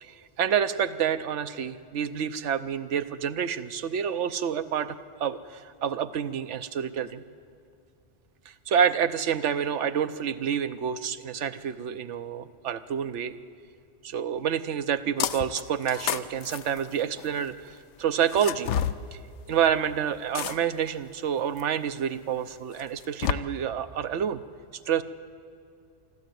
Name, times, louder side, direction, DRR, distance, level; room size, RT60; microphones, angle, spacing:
voice 1, 0.0-7.2 8.5-13.4 14.0-18.7 19.1-19.2 19.5-24.4 24.9-25.0, right 8 dB, 85° right, 11 dB, 1.1 m, -28 dB
sound 1, 15.2-15.6 15.9-17.4 18.3-19.0 20.3-20.9 21.6-21.7 22.8-23.3, left 9 dB, 80° left, 1.0 m, -29 dB
24.0 x 13.5 x 9.3 m, 2.4 s
omnidirectional pair, 1.2 m